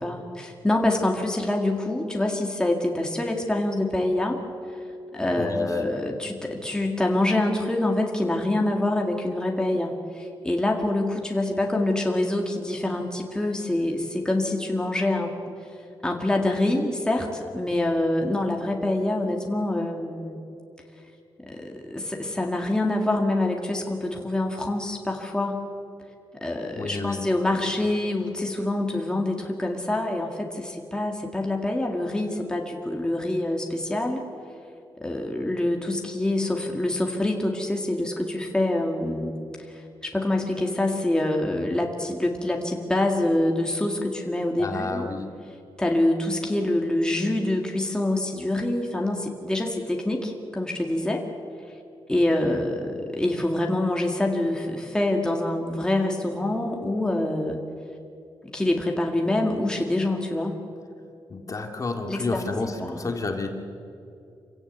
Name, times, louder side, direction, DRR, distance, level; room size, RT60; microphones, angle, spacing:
voice 1, 0.0-4.4 5.1-15.3 16.0-20.4 21.4-25.6 26.4-34.2 35.0-39.3 39.7-45.1 45.8-51.2 52.1-57.6 58.4-60.6 62.1-63.1, left 1 dB, 10° left, 1 dB, 2.1 m, -26 dB
voice 2, 5.4-5.7 26.8-27.2 44.6-45.3 61.3-63.5, left 3 dB, 40° left, 3 dB, 2.2 m, -30 dB
27.0 x 16.5 x 8.1 m, 2.6 s
wide cardioid pair, 140°, 9 cm